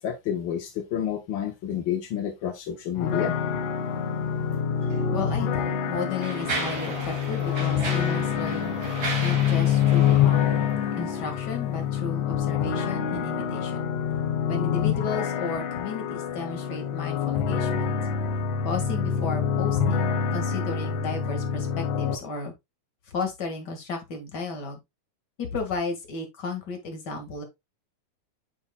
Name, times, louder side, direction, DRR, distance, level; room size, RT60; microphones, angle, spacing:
voice 1, 0.0-3.3, left 9 dB, 65° left, 1.2 m, -29 dB
sound 1, 3.0-22.2, left 8 dB, 85° left, 2.5 m, -26 dB
Mechanisms, 4.8-5.0 5.7-11.4, right 3 dB, 35° right, 2.9 m, -35 dB
voice 2, 5.1-13.8 14.5-18.0 18.6-22.5 23.1-24.8 25.4-27.4, left 4 dB, 40° left, 2.2 m, -34 dB
9.6 x 6.2 x 2.3 m
omnidirectional pair, 3.4 m